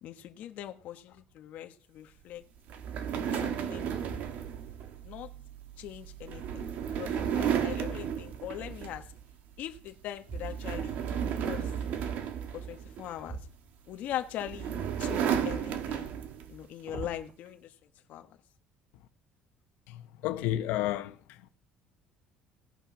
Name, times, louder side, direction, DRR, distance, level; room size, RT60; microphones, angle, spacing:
voice 1, 0.0-2.5 3.1-4.1 5.0-5.3 5.8-9.1 9.6-11.7 12.5-13.4 13.9-14.7 15.0-16.1 16.5-17.7 18.1-18.4, left 12 dB, 55° left, 1.3 m, -41 dB
sound 1, 1.1-1.5 2.1-2.2 2.8-3.4 3.9-4.8 6.5-8.2 10.2-11.0 13.1-14.2 14.6-15.4 16.4-17.3, right 4 dB, 40° right, 2.5 m, -47 dB
sound 2, 2.7-9.2 9.6-9.9 10.3-13.3 14.1-16.6, right 8 dB, 55° right, 1.5 m, -33 dB
voice 2, 19.9-21.4, left 13 dB, 75° left, 1.2 m, -32 dB
17.0 x 8.9 x 6.1 m
cardioid pair, 165°, 3 cm